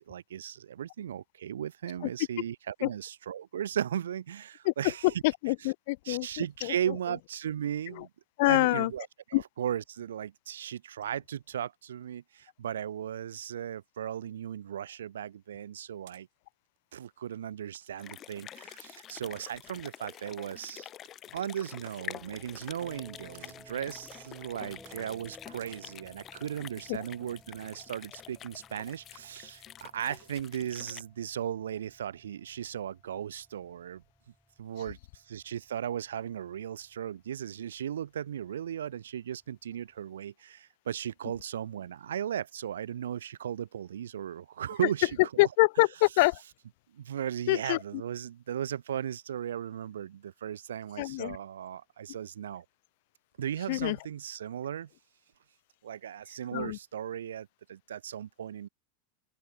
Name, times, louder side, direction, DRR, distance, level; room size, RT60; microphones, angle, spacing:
voice 1, 0.0-5.1 6.1-8.1 8.4-16.3 16.9-20.9 21.3-34.0 34.6-45.1 46.9-52.6 53.4-54.9 55.8-58.7, right 9 dB, 85° right, 0.3 m, -36 dB
voice 2, 5.2-6.7 8.0-8.1 8.4-8.9 9.3-9.4 26.9-27.0 45.4-46.4 47.5-47.8 51.0-51.4 53.7-54.0 56.5-56.8, left 23 dB, 65° left, 0.6 m, -26 dB
sound 1, 15.7-16.2 16.8-17.1 17.7-18.0 18.6-18.8 19.4-19.5 20.1-20.5 21.0-21.1 21.7-22.1 22.4-23.1 23.3-23.7 24.1-24.4 24.8-25.0 25.5-25.9, right 18 dB, 65° right, 5.0 m, -57 dB
sound 2, 18.0-31.0, left 11 dB, 35° left, 4.5 m, -47 dB
sound 3, 22.1-40.1, equal, ahead, 4.2 m, -58 dB
open air
hypercardioid pair, 110°, 0 cm